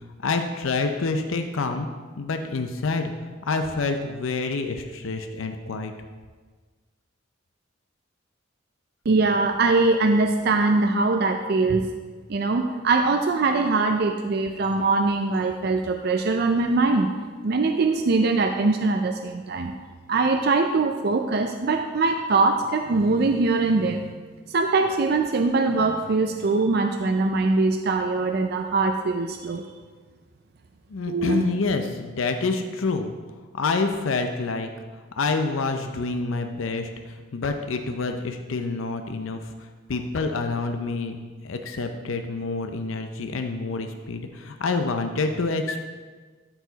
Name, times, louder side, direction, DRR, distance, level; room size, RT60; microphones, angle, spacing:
voice 1, 0.2-1.9 2.2-3.1 3.5-5.9 30.9-33.1 33.5-34.7 35.2-39.4 39.9-41.2 41.4-45.8, left 3 dB, 85° left, 6 dB, 0.6 m, -27 dB
voice 2, 9.1-11.9 12.3-17.1 17.4-19.7 20.1-24.2 24.5-29.6 31.1-31.4, right 3 dB, 50° right, 5 dB, 0.4 m, -22 dB
13.0 x 4.7 x 4.0 m, 1.4 s
head